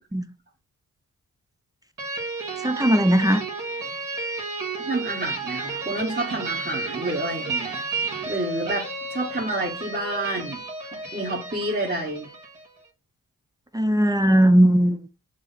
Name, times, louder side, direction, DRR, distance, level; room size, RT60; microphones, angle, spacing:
sound 1, 2.0-12.7, right 3 dB, 60° right, 1.9 m, -32 dB
voice 1, 2.6-3.4 13.7-15.0, right 1 dB, 10° right, 0.5 m, -18 dB
voice 2, 4.8-7.8 8.3-10.6 10.9-12.3, right 2 dB, 25° right, 1.5 m, -29 dB
6.2 x 2.1 x 4.0 m
cardioid pair, 50°, 36 cm